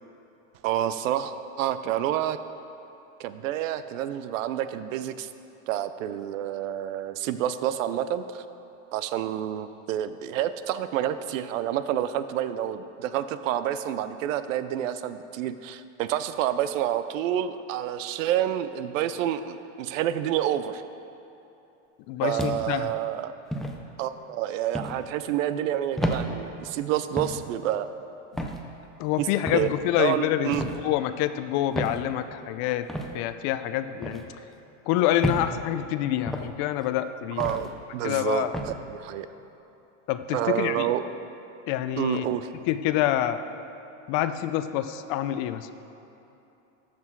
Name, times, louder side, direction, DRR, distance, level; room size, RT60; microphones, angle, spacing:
voice 1, 0.6-2.4 3.2-5.3 5.7-8.4 8.9-20.8 22.2-23.3 24.0-27.9 29.5-29.7 30.0-30.7 37.4-39.3 40.3-41.0 42.0-42.5, right 11 dB, 85° right, 12 dB, 0.6 m, -28 dB
voice 2, 22.1-22.9 28.3-28.5 29.0-32.9 33.1-34.2 34.9-37.6 38.0-38.6 40.1-40.9 41.7-42.2 42.7-43.4 44.1-45.7, left 12 dB, 50° left, 11 dB, 0.5 m, -27 dB
sound 1, 22.4-22.8 23.5-23.8 24.7-25.0 26.0-26.2 27.2-27.4 28.4-28.6 29.5-29.7 30.5-30.8 31.7-32.0 32.9-33.1 34.0-34.2 35.2-35.5 36.3-36.5 37.4-37.7 38.5-38.7, equal, ahead, 0.3 m, -30 dB
13.5 x 6.0 x 4.6 m, 2.9 s
supercardioid pair, 135°, 38 cm